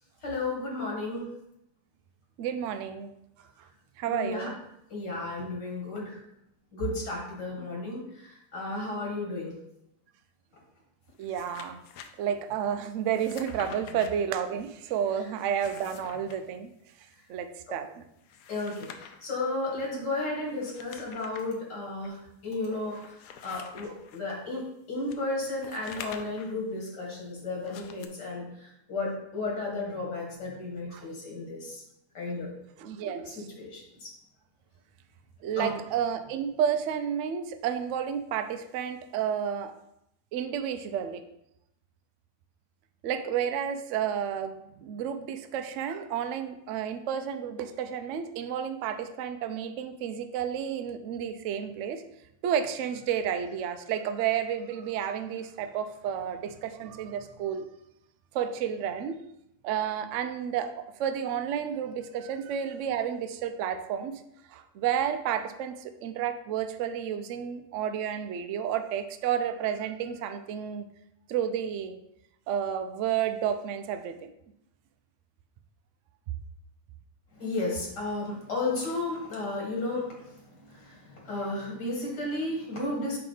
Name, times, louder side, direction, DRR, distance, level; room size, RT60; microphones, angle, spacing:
voice 1, 0.2-1.3 4.1-4.5 4.9-6.2 6.7-9.5 13.9-14.0 15.2-15.3 18.5-31.8 32.1-32.5 33.3-34.1 35.6-35.7 77.4-83.2, left 2 dB, 85° left, -1 dB, 2.2 m, -33 dB
voice 2, 2.4-3.1 4.0-4.6 11.2-11.8 12.2-16.7 17.3-18.0 30.9-31.1 32.8-33.5 35.4-39.7 40.3-41.2 43.0-52.0 52.4-57.6 58.3-59.2 59.6-64.1 64.5-70.8 71.3-72.0 72.5-74.3, right 8 dB, 70° right, 8 dB, 0.7 m, -31 dB
sound 1, 11.1-12.1 13.1-14.1 15.4-16.4 18.2-19.3 20.5-21.5 22.0-22.1 22.8-24.2 25.1-26.6 27.6-28.1, left 7 dB, 70° left, 1.0 m, -47 dB
5.9 x 4.8 x 3.9 m, 0.80 s
omnidirectional pair, 1.8 m